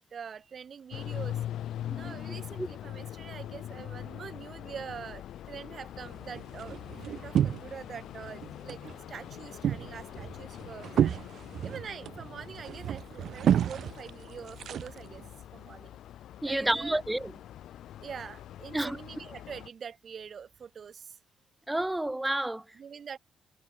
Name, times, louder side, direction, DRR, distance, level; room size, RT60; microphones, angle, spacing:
voice 1, 0.0-1.4 1.9-6.8 7.1-8.8 9.1-11.2 11.6-15.2 15.5-16.0 16.5-17.0 18.0-21.2 22.7-23.2, right 7 dB, 50° right, 7.6 m, -44 dB
sound 1, 0.9-19.7, left 11 dB, 75° left, 7.6 m, -43 dB
sound 2, 6.0-8.0 8.3-9.0 9.3-15.3, right 9 dB, 65° right, 1.5 m, -31 dB
voice 2, 16.4-17.3 18.7-19.0 21.7-22.6, right 1 dB, 10° right, 1.1 m, -30 dB
cardioid pair, 80°, 0 cm